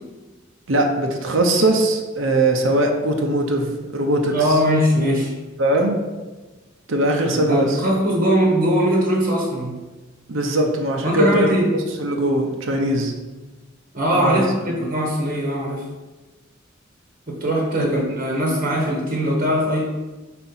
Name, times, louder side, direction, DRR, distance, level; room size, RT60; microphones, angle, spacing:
voice 1, 0.7-4.6 5.6-6.0 6.9-7.8 10.3-11.5 12.0-13.1 14.1-14.4 17.8-17.9, right 1 dB, 90° right, 2 dB, 0.8 m, -20 dB
voice 2, 4.3-5.3 7.5-9.8 11.0-11.7 13.9-15.9 17.3-19.8, equal, 45° right, -2 dB, 1.0 m, -20 dB
4.4 x 4.2 x 5.5 m, 1.2 s
head